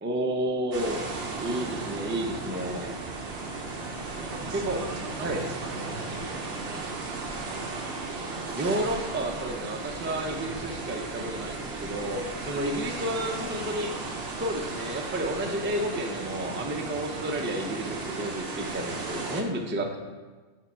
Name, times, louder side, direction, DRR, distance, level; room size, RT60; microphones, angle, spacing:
voice 1, 0.0-1.0 1.4-3.0 4.5-4.8 5.2-5.4 8.6-14.0 14.4-20.0, right 1 dB, 20° right, 3 dB, 0.3 m, -31 dB
sound 1, 0.7-19.4, right 3 dB, 60° right, 1.0 m, -35 dB
voice 2, 4.1-7.0 12.0-12.2 17.2-17.3 19.5-19.9, right 3 dB, 80° right, 3 dB, 1.2 m, -43 dB
7.4 x 3.3 x 6.0 m, 1.3 s
omnidirectional pair, 1.2 m